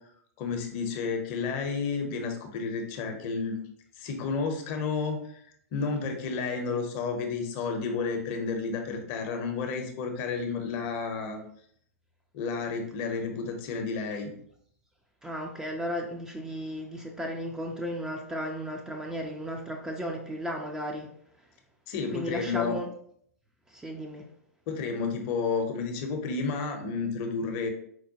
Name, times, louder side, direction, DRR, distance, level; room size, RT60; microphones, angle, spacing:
voice 1, 0.4-3.6 4.0-5.4 5.7-11.4 12.3-14.3 21.9-22.8 24.7-27.7, left 4 dB, 40° left, 4 dB, 0.7 m, -31 dB
voice 2, 15.2-21.1 22.1-22.9 23.7-24.3, equal, 5° right, 1 dB, 0.4 m, -34 dB
4.5 x 2.1 x 2.8 m, 0.66 s
figure-of-eight pair, 105°, 8 cm